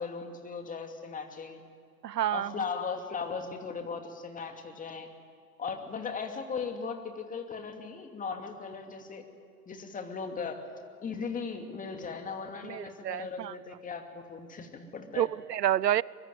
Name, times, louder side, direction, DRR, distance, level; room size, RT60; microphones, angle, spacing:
voice 1, 0.0-1.6 2.3-5.1 5.6-9.3 9.7-10.6 11.0-15.3, left 5 dB, 15° left, 2.6 m, -38 dB
voice 2, 2.0-2.5 12.6-13.5 15.2-16.0, right 11 dB, 80° right, 0.7 m, -29 dB
24.5 x 23.0 x 9.3 m
figure-of-eight pair, 105°, 48 cm